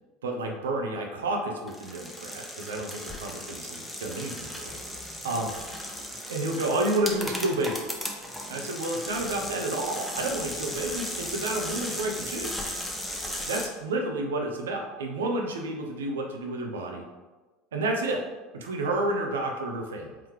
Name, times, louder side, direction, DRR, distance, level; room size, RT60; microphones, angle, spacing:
voice 1, 0.2-4.7 5.2-5.5 6.3-8.0 8.5-12.7 13.5-17.0 17.7-18.2 18.5-20.2, right 2 dB, 80° right, 2 dB, 0.6 m, -30 dB
sound 1, 1.7-13.7, equal, ahead, 0.7 m, -36 dB
3.9 x 2.9 x 3.1 m, 1.2 s
hypercardioid pair, 75°, 0 cm